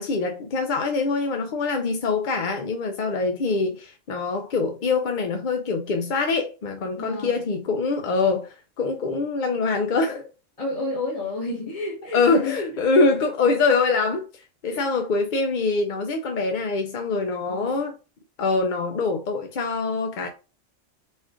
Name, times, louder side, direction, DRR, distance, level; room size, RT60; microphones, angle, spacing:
voice 1, 0.0-10.3 12.1-17.9 18.4-20.3, left 4 dB, 55° left, 0.6 m, -24 dB
voice 2, 7.0-7.4 10.6-12.6 12.9-13.0 14.7-14.9 17.5-17.8, left 3 dB, 30° left, 1.0 m, -31 dB
4.3 x 2.4 x 4.7 m
omnidirectional pair, 1.3 m